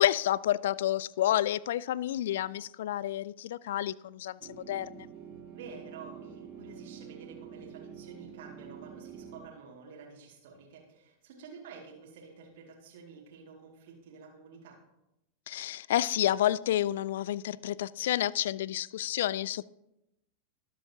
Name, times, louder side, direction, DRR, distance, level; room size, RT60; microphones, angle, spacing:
voice 1, 0.0-5.1 15.5-19.6, left 12 dB, 55° left, 22 dB, 0.3 m, -29 dB
sound 1, 4.4-9.4, right 8 dB, 35° right, 2.3 m, -47 dB
voice 2, 5.5-14.8, right 5 dB, 55° right, -2 dB, 2.3 m, -50 dB
19.5 x 7.6 x 2.9 m, 0.88 s
figure-of-eight pair, 90°, 0 cm